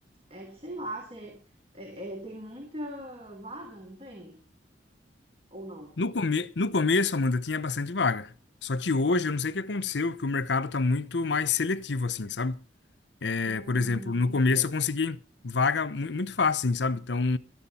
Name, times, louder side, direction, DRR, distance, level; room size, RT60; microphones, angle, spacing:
voice 1, 0.3-1.4 1.7-4.4 5.5-5.9 13.4-14.7, right 1 dB, 35° right, 3.6 m, -41 dB
voice 2, 6.0-8.3 8.6-12.6 13.2-15.2 15.4-17.4, left 4 dB, 75° left, 0.8 m, -27 dB
18.0 x 13.0 x 4.3 m
head